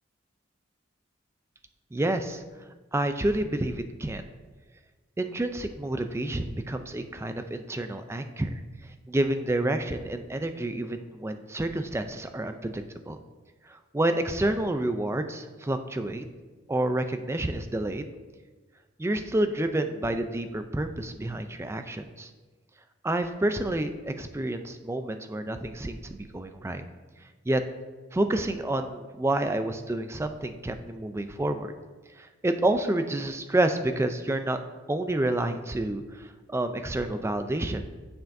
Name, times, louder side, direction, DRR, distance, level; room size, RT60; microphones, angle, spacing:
voice 1, 1.9-2.4 2.9-4.2 5.2-8.5 9.1-13.2 13.7-16.3 16.7-18.1 19.0-22.3 23.0-26.8 27.5-27.6 28.1-31.7 32.2-34.6 34.9-37.8, right 1 dB, 15° right, 8 dB, 0.4 m, -29 dB
9.2 x 7.0 x 2.6 m, 1.3 s
head